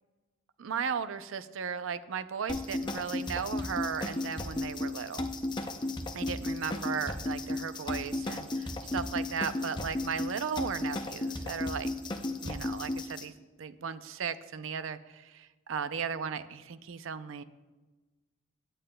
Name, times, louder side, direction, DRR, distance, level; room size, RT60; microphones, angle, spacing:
voice 1, 0.6-5.3 6.1-11.9 12.4-13.3 13.6-17.4, right 6 dB, 80° right, 13 dB, 0.5 m, -36 dB
sound 1, 2.5-13.3, left 2 dB, 20° left, 0.5 m, -34 dB
17.0 x 8.9 x 2.2 m, 1.2 s
head